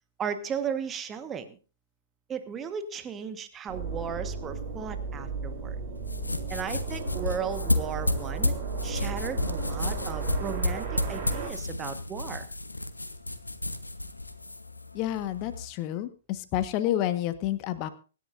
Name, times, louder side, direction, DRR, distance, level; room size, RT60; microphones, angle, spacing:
voice 1, 0.2-1.6 2.3-5.8 6.5-8.5 8.8-12.5, right 7 dB, 20° right, 10 dB, 1.4 m, -35 dB
sound 1, 3.7-11.5, right 4 dB, 45° right, 7.3 m, -35 dB
sound 2, 6.0-15.7, left 2 dB, 85° left, 1.1 m, -32 dB
voice 2, 14.9-17.9, left 12 dB, 35° left, 11 dB, 1.4 m, -29 dB
24.5 x 10.5 x 2.6 m, 0.35 s
figure-of-eight pair, 115°, 0 cm